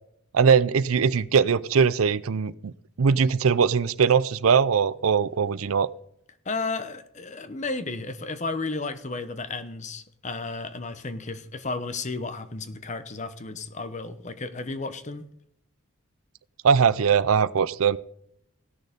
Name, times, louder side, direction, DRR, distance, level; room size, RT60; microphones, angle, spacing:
voice 1, 0.3-2.5 3.0-5.9 16.6-18.0, right 6 dB, 80° right, 17 dB, 0.5 m, -21 dB
voice 2, 6.4-15.2, left 3 dB, 35° left, 11 dB, 0.9 m, -33 dB
17.0 x 6.5 x 5.2 m, 0.72 s
head